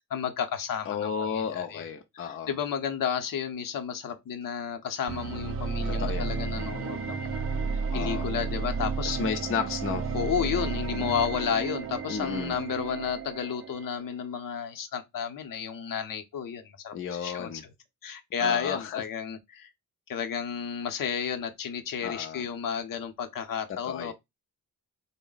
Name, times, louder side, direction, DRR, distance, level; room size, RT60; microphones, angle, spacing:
voice 1, 0.1-1.8 2.1-7.4 7.9-9.1 10.1-17.6 18.0-19.7 20.1-24.1, left 7 dB, 70° left, 0.7 m, -32 dB
voice 2, 0.9-2.5 5.9-6.3 7.9-8.3 9.1-10.1 12.1-12.6 16.9-17.6 18.4-19.0 22.0-22.5 23.8-24.1, left 7 dB, 40° left, 0.5 m, -33 dB
sound 1, 5.1-14.1, right 5 dB, 40° right, 0.4 m, -32 dB
3.5 x 2.1 x 3.8 m
wide cardioid pair, 150°, 34 cm